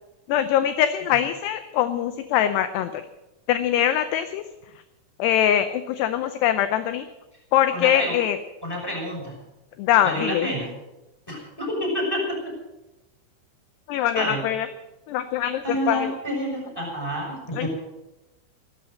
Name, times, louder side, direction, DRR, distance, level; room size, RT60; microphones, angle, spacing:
voice 1, 0.3-3.0 3.5-4.4 5.2-7.1 7.5-8.4 9.8-10.5 13.9-14.7 15.1-16.1 17.5-17.7, left 11 dB, 80° left, 11 dB, 2.5 m, -23 dB
voice 2, 7.7-8.2 8.6-9.4 10.0-10.7 11.3-12.5 14.1-14.4 15.6-17.7, equal, 5° left, -2 dB, 5.9 m, -28 dB
15.5 x 12.5 x 6.5 m, 0.98 s
omnidirectional pair, 5.4 m